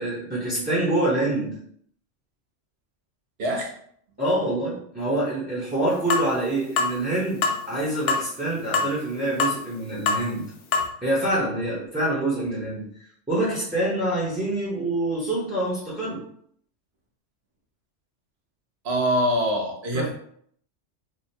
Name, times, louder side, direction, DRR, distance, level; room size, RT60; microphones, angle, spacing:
voice 1, 0.0-1.6 4.2-10.5 11.0-12.8 13.3-16.2 19.9-20.1, right 1 dB, 10° right, -7 dB, 1.0 m, -26 dB
voice 2, 3.4-3.7 18.8-20.1, equal, 60° right, 0 dB, 1.1 m, -24 dB
sound 1, 6.1-6.3 6.8-6.9 7.4-7.6 8.1-8.3 8.7-8.9 9.4-9.6 10.1-10.2 10.7-10.9, left 4 dB, 75° left, 0.9 m, -23 dB
3.5 x 2.3 x 4.3 m, 0.65 s
omnidirectional pair, 1.3 m